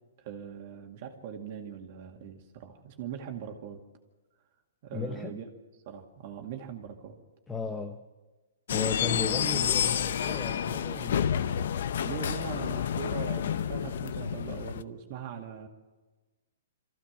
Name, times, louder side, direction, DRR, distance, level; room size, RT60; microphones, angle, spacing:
voice 1, 0.2-3.8 4.8-5.4 5.9-7.2 12.0-15.7, right 8 dB, 35° right, 3 dB, 2.1 m, -41 dB
voice 2, 4.9-5.4 7.5-8.0 8.7-11.3, left 4 dB, 5° left, 5 dB, 0.8 m, -35 dB
sound 1, 8.7-14.8, left 9 dB, 55° left, 0.8 m, -29 dB
24.0 x 15.0 x 7.3 m, 1.2 s
hypercardioid pair, 165°, 0 cm